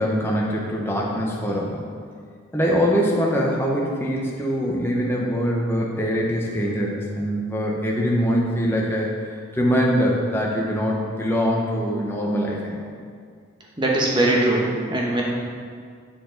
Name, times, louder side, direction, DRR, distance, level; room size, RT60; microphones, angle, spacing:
voice 1, 0.0-1.8 2.5-9.1 9.5-12.9, equal, 10° left, -3 dB, 0.8 m, -23 dB
voice 2, 13.8-15.2, right 1 dB, 25° right, -2 dB, 1.0 m, -21 dB
8.8 x 4.7 x 3.8 m, 2.1 s
head